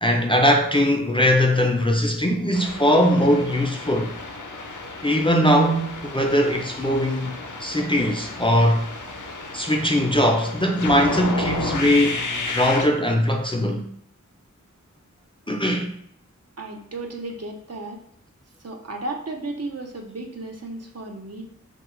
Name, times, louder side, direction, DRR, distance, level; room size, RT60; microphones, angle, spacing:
voice 1, 0.0-4.1 5.0-8.8 9.5-13.9 15.5-15.9, equal, 15° left, 0.4 m, -20 dB
sound 1, 2.5-12.9, left 3 dB, 75° left, 0.5 m, -32 dB
voice 2, 16.6-18.0 18.6-21.5, right 2 dB, 55° right, 0.5 m, -34 dB
2.8 x 2.2 x 3.0 m
wide cardioid pair, 40°, 31 cm